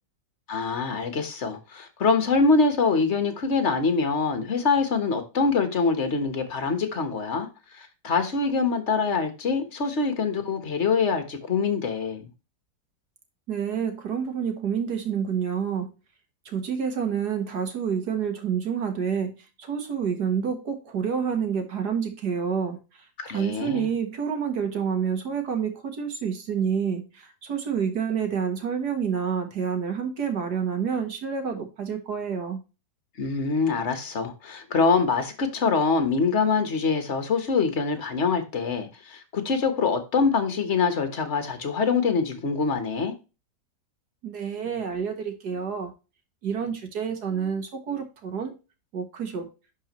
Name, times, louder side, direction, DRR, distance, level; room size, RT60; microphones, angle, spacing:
voice 1, 0.5-7.5 7.7-12.2 23.2-23.9 33.2-43.1, left 4 dB, 40° left, 1.5 m, -24 dB
voice 2, 13.5-15.9 16.5-32.6 44.2-45.9 46.4-48.5 48.9-49.5, right 7 dB, 65° right, 1.9 m, -28 dB
11.0 x 4.4 x 3.0 m
omnidirectional pair, 1.9 m